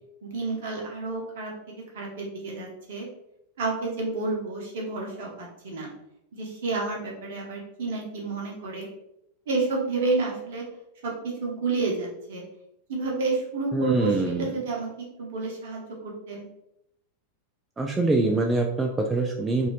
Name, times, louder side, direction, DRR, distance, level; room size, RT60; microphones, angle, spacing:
voice 1, 0.2-3.1 3.6-5.9 6.3-8.9 9.5-10.6 11.0-12.4 12.9-14.9 15.2-16.5, right 3 dB, 55° right, -2 dB, 0.9 m, -30 dB
voice 2, 13.7-14.5 17.8-19.7, right 2 dB, 15° right, 2 dB, 0.3 m, -24 dB
2.7 x 2.6 x 3.1 m, 0.81 s
figure-of-eight pair, 90°, 0 cm